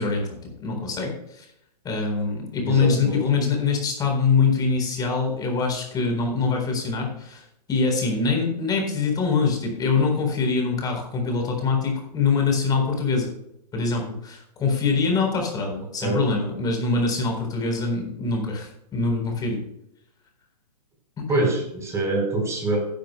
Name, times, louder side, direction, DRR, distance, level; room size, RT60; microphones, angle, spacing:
voice 1, 0.0-1.5 1.8-13.3 13.7-19.6 21.2-21.3, left 4 dB, 20° left, 2 dB, 4.0 m, -24 dB
voice 2, 2.6-3.2 16.0-16.2 21.3-22.9, right 2 dB, 15° right, 1 dB, 4.0 m, -24 dB
16.0 x 10.5 x 2.2 m, 0.76 s
hypercardioid pair, 125°, 21 cm